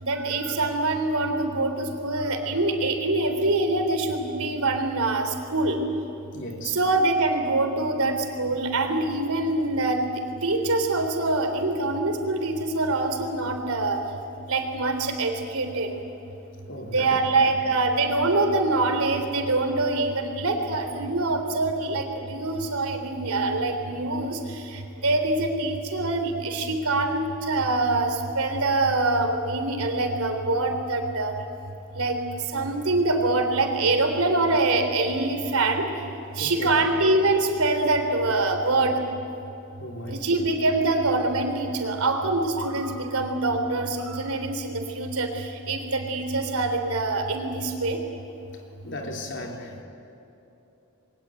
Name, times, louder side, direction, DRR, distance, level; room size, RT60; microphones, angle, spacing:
voice 1, 0.0-5.8 6.6-10.0 10.4-14.0 14.5-15.9 16.9-31.3 32.0-32.2 32.5-35.9 36.4-39.0 40.1-48.0, right 2 dB, 75° right, 5 dB, 3.6 m, -24 dB
voice 2, 6.3-6.8 16.7-17.5 36.4-36.7 39.8-40.2 48.8-49.8, left 1 dB, 55° left, 2 dB, 3.7 m, -36 dB
28.0 x 22.0 x 9.1 m, 2.9 s
head